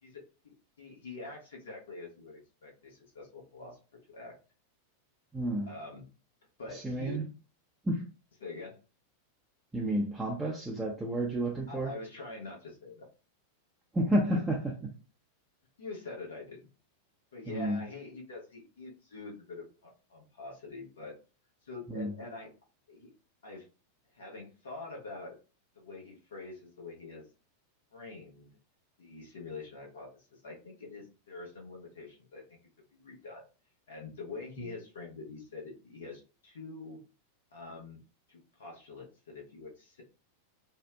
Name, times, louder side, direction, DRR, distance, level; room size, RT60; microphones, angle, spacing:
voice 1, 0.0-3.8 4.1-4.3 5.7-6.0 6.6-7.2 8.4-8.8 11.7-13.1 14.3-14.4 15.8-16.6 17.3-21.2 21.6-22.5 22.9-23.1 23.4-23.7 24.1-25.4 25.8-27.3 27.9-28.5 29.0-32.6 32.9-33.4 33.9-37.0 37.5-38.0 38.3-40.0, left 3 dB, 65° left, -1 dB, 0.8 m, -45 dB
voice 2, 5.3-5.7 6.7-7.2 7.8-8.0 9.7-11.9 13.9-14.9 17.5-17.8 21.9-22.1, right 1 dB, 10° right, -2 dB, 0.5 m, -31 dB
2.7 x 2.0 x 2.2 m, 0.35 s
figure-of-eight pair, 90°, 0 cm